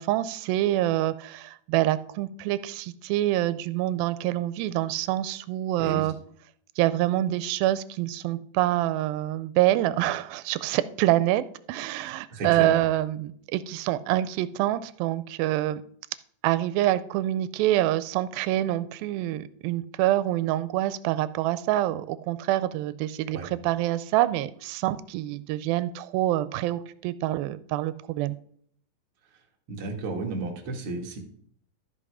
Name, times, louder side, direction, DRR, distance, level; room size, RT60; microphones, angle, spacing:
voice 1, 0.0-6.1 6.8-15.8 16.4-28.4, right 14 dB, 85° right, 15 dB, 2.4 m, -26 dB
voice 2, 12.3-12.8 23.3-23.5 29.7-31.2, right 3 dB, 45° right, 0 dB, 2.3 m, -32 dB
13.5 x 5.4 x 4.8 m, 0.63 s
omnidirectional pair, 4.1 m